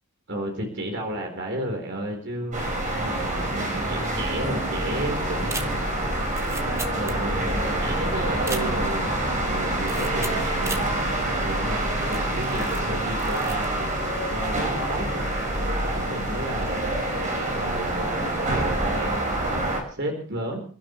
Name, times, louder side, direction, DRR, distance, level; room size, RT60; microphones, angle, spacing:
voice 1, 0.3-2.6 3.0-6.1 6.9-13.8 14.3-17.0 17.5-20.6, right 1 dB, 50° right, 2 dB, 4.3 m, -33 dB
sound 1, 2.5-19.8, right 1 dB, 35° right, 5.6 m, -26 dB
sound 2, 5.4-7.6 7.8-7.9 8.3-9.1 9.8-10.9 11.4-11.5 12.1-12.9 13.1-13.7 14.0-14.3, right 3 dB, 15° right, 1.4 m, -37 dB
29.5 x 12.5 x 3.3 m, 0.42 s
head